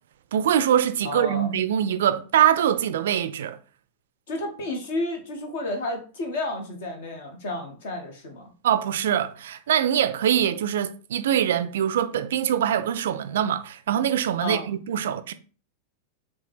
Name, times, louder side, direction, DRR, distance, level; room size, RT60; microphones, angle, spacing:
voice 1, 0.3-3.6 8.6-15.3, right 10 dB, 60° right, 0.3 m, -23 dB
voice 2, 1.0-1.5 4.3-8.5 14.4-14.7, left 1 dB, 55° left, 1.1 m, -31 dB
5.4 x 2.2 x 3.3 m
figure-of-eight pair, 90°, 0 cm